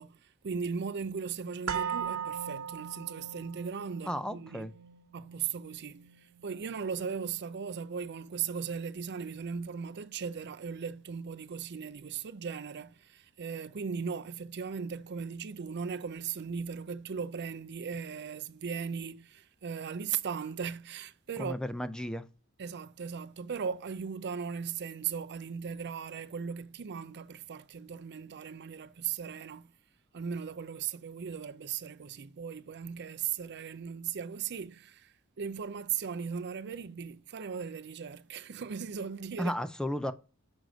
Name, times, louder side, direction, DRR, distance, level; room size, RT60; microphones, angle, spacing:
voice 1, 0.0-4.7 5.1-21.6 22.6-29.7 30.1-39.5, right 6 dB, 50° right, 0.5 m, -38 dB
sound 1, 1.7-9.7 10.1-10.2, right 7 dB, 80° right, 1.0 m, -41 dB
voice 2, 4.1-4.7 21.4-22.3 39.4-40.1, equal, 5° left, 0.5 m, -34 dB
6.5 x 6.3 x 3.9 m
head